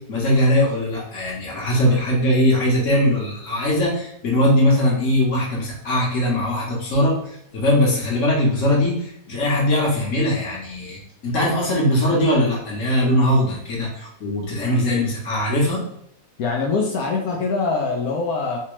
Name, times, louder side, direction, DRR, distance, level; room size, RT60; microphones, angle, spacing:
voice 1, 0.1-7.2 7.5-15.8, left 1 dB, 55° left, -2 dB, 1.3 m, -20 dB
voice 2, 16.4-18.6, left 4 dB, 70° left, 0 dB, 1.0 m, -23 dB
3.4 x 2.8 x 3.0 m, 0.70 s
omnidirectional pair, 1.8 m